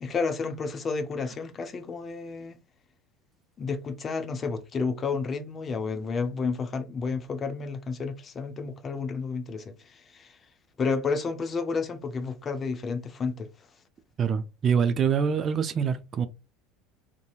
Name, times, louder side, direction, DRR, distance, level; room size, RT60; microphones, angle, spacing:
voice 1, 0.0-2.6 3.6-10.4 10.8-13.5, left 4 dB, 30° left, 0.5 m, -31 dB
voice 2, 14.2-16.3, right 7 dB, 35° right, 0.4 m, -25 dB
2.7 x 2.6 x 2.3 m
hypercardioid pair, 75°, 0 cm